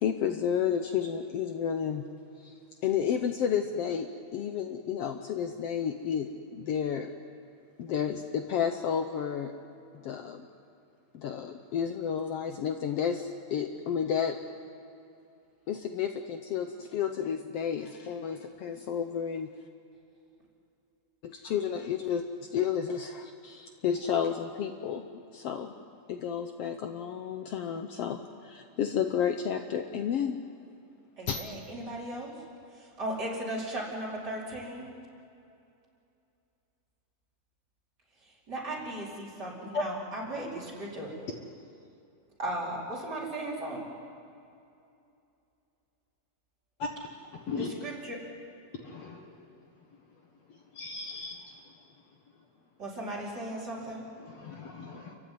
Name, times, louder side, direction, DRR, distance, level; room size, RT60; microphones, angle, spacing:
voice 1, 0.0-2.0 2.4-2.6 2.8-7.1 7.8-9.5 9.9-10.4 11.1-14.4 15.7-19.5 21.2-22.2 22.5-25.1 25.3-25.7 26.1-30.4 31.3-31.4, left 8 dB, 80° left, 6 dB, 1.3 m, -31 dB
voice 2, 31.2-32.3 32.7-34.9 38.5-41.1 42.4-43.8 47.5-48.2 52.8-54.0, right 1 dB, 30° right, -5 dB, 5.2 m, -36 dB
voice 3, 48.8-49.2 50.8-51.4 54.3-55.1, left 3 dB, 55° left, 2 dB, 2.4 m, -36 dB
30.0 x 15.0 x 9.5 m, 2.6 s
omnidirectional pair, 4.0 m